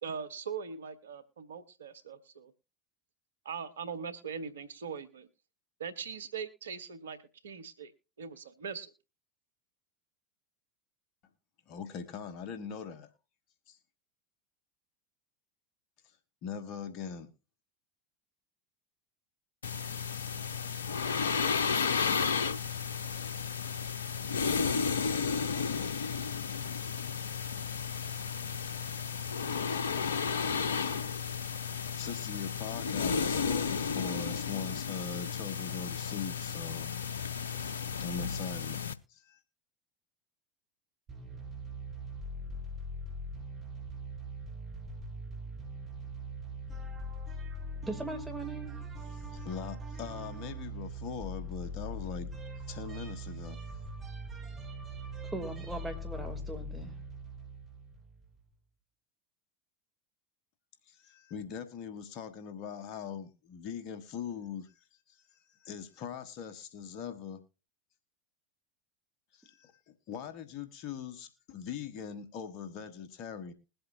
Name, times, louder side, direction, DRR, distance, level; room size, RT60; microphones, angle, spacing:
voice 1, 0.0-2.5 3.4-5.3 5.8-7.2 7.4-7.9 8.2-8.9, right 6 dB, 80° right, 0.9 m, -41 dB
voice 2, 11.7-13.1 13.7-13.8 16.4-17.3 32.0-38.8 39.1-39.4 49.1-52.3 52.7-53.6 60.9-64.7 65.1-65.2 65.6-67.4 69.3-73.5, left 7 dB, 55° left, 1.4 m, -41 dB
sound 1, 19.6-38.9, left 6 dB, 80° left, 0.5 m, -33 dB
sound 2, 41.1-58.4, right 1 dB, 30° right, 2.1 m, -41 dB
voice 3, 47.8-48.8 55.3-56.9, right 2 dB, 10° right, 3.0 m, -39 dB
21.0 x 7.9 x 2.7 m
hypercardioid pair, 85°, 0 cm